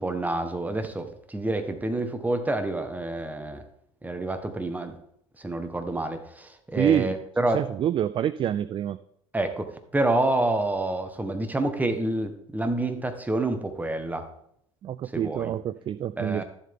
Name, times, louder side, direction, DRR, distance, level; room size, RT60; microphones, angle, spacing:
voice 1, 0.0-3.6 4.0-5.0 5.4-7.6 9.3-9.7 9.9-14.2 15.1-15.5 16.2-16.4, right 2 dB, 10° right, 8 dB, 1.4 m, -28 dB
voice 2, 6.8-7.1 7.5-9.0 14.8-16.4, right 10 dB, 30° right, 16 dB, 0.4 m, -26 dB
12.0 x 7.5 x 3.7 m, 0.74 s
hypercardioid pair, 80°, 16 cm